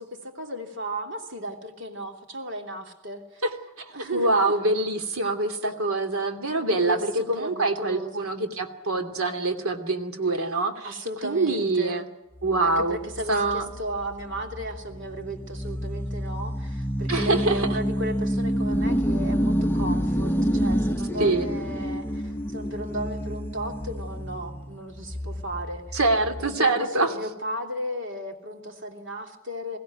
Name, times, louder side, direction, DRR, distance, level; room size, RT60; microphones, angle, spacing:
voice 1, 0.0-3.4 3.9-4.5 5.6-5.7 6.6-8.3 10.8-12.0 12.6-26.0 26.4-29.8, equal, 55° right, 3 dB, 3.0 m, -35 dB
voice 2, 3.8-10.9 11.2-12.1 12.4-13.0 13.3-13.7 17.1-17.7 21.2-21.5 25.9-27.1, right 2 dB, 80° right, 6 dB, 2.7 m, -25 dB
sound 1, 12.4-26.6, equal, 10° left, 0.7 m, -28 dB
22.5 x 16.5 x 9.4 m, 0.99 s
head